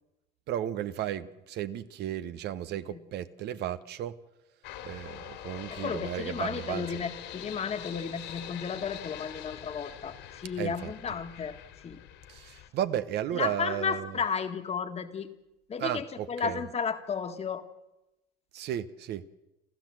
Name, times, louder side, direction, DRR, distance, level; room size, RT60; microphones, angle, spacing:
voice 1, 0.5-4.1 4.8-7.0 10.6-10.9 12.3-14.2 15.8-16.6 18.5-19.3, right 11 dB, 55° right, 12 dB, 1.0 m, -34 dB
sound 1, 4.6-12.7, left 11 dB, 70° left, 2.9 m, -44 dB
voice 2, 5.7-11.6 11.8-12.0 13.3-15.3 15.7-17.6, left 6 dB, 30° left, 8 dB, 1.7 m, -33 dB
29.0 x 13.5 x 7.7 m, 0.96 s
cardioid pair, 115°, 20 cm